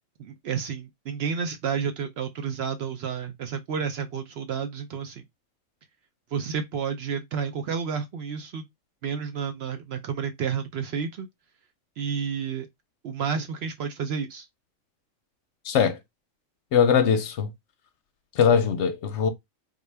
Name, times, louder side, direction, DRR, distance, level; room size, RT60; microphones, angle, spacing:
voice 1, 0.2-5.2 6.3-8.6 9.0-11.3 12.0-12.7 13.0-14.5, right 6 dB, 65° right, 0.7 m, -30 dB
voice 2, 15.7-16.0 16.7-17.5 18.4-19.3, left 7 dB, 70° left, 0.8 m, -21 dB
3.7 x 2.3 x 3.2 m
omnidirectional pair, 1.4 m